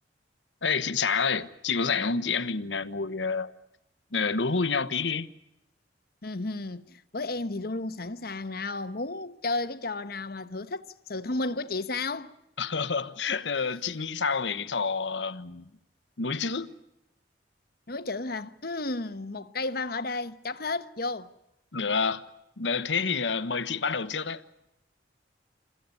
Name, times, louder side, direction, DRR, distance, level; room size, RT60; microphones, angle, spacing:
voice 1, 0.6-3.5 4.1-5.3 12.6-15.7 16.2-16.7 21.7-22.3 22.6-24.4, left 5 dB, 90° left, 1.2 m, -28 dB
voice 2, 6.2-10.8 11.1-12.3 17.9-21.3, left 2 dB, 60° left, 1.2 m, -33 dB
28.5 x 15.0 x 9.8 m
head